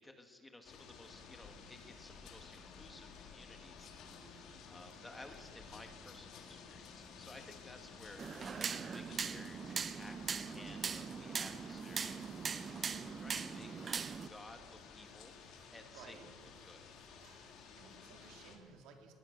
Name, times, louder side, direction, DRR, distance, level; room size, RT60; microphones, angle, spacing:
voice 1, 0.0-3.9 4.7-12.1 13.2-15.3 15.7-16.8, left 2 dB, 10° left, 5 dB, 1.4 m, -56 dB
sound 1, 0.6-18.6, left 5 dB, 55° left, 2.8 m, -55 dB
sound 2, 1.1-13.9, left 5 dB, 25° left, 1.2 m, -62 dB
sound 3, 8.2-14.3, right 6 dB, 25° right, 0.6 m, -40 dB
voice 2, 15.9-16.3 17.2-19.1, right 5 dB, 70° right, 3 dB, 3.3 m, -57 dB
21.0 x 19.0 x 6.4 m, 2.3 s
cardioid pair, 155°, 0 cm